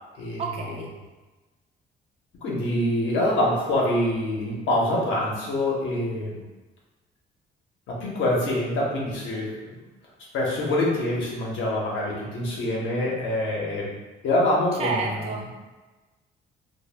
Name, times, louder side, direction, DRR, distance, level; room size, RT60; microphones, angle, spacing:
voice 1, 0.4-0.9 14.8-15.6, right 4 dB, 30° right, 0 dB, 0.4 m, -30 dB
voice 2, 2.4-6.4 7.9-9.8 10.3-13.9 14.2-15.1, left 1 dB, 75° left, -4 dB, 0.8 m, -25 dB
2.1 x 2.0 x 3.2 m, 1.2 s
cardioid pair, 90°, 20 cm